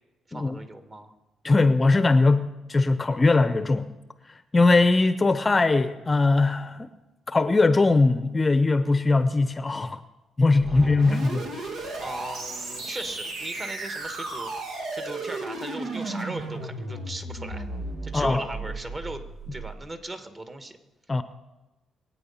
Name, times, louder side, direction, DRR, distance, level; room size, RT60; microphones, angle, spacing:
voice 1, 0.3-1.1 10.7-11.5 12.0-14.5 14.9-17.7 18.0-19.2 19.5-20.8, right 2 dB, 30° right, 1.6 m, -38 dB
voice 2, 1.4-3.9 4.5-6.9 7.3-10.0 10.4-11.4 18.1-18.4 21.1-21.2, left 3 dB, 25° left, 0.6 m, -21 dB
sound 1, 10.6-19.7, right 2 dB, 90° right, 2.3 m, -34 dB
22.5 x 8.6 x 5.7 m
cardioid pair, 90°, 0 cm